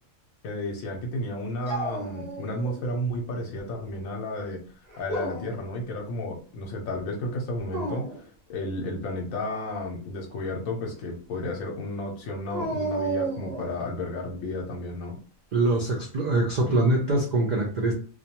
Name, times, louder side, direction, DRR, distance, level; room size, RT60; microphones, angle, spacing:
voice 1, 0.4-4.6 5.0-15.2, left 1 dB, 85° left, 0 dB, 1.0 m, -32 dB
Dog, 1.6-2.8 3.2-3.9 4.9-5.6 7.6-8.2 12.5-13.8, right 2 dB, 35° right, 0.7 m, -32 dB
voice 2, 15.5-17.9, right 2 dB, 80° right, -1 dB, 0.4 m, -23 dB
2.3 x 2.2 x 2.8 m, 0.40 s
omnidirectional pair, 1.4 m